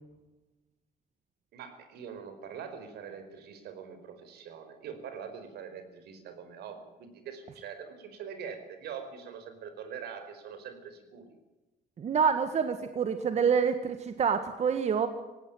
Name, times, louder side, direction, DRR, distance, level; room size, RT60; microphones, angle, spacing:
voice 1, 1.5-11.4, right 7 dB, 75° right, 8 dB, 4.7 m, -43 dB
voice 2, 12.0-15.1, right 6 dB, 40° right, 9 dB, 1.6 m, -27 dB
18.0 x 18.0 x 9.1 m, 1.1 s
cardioid pair, 110°, 17 cm